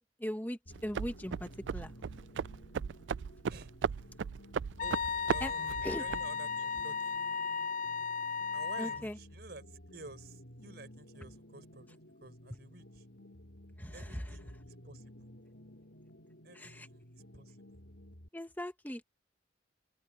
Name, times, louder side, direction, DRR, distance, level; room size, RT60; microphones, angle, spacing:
voice 1, 0.2-1.9 5.4-5.5 5.8-6.0 8.8-9.1 13.8-14.2 16.5-16.9 18.3-19.0, equal, 10° left, 1.5 m, -39 dB
sound 1, 0.7-18.3, equal, 75° left, 5.0 m, -54 dB
sound 2, 0.7-6.3, right 7 dB, 80° right, 0.4 m, -37 dB
Wind instrument woodwind instrument, 4.8-9.1, left 5 dB, 45° left, 0.5 m, -35 dB
voice 2, 5.3-7.3 8.5-13.1 13.9-15.3 16.4-17.8, right 2 dB, 60° right, 5.4 m, -51 dB
head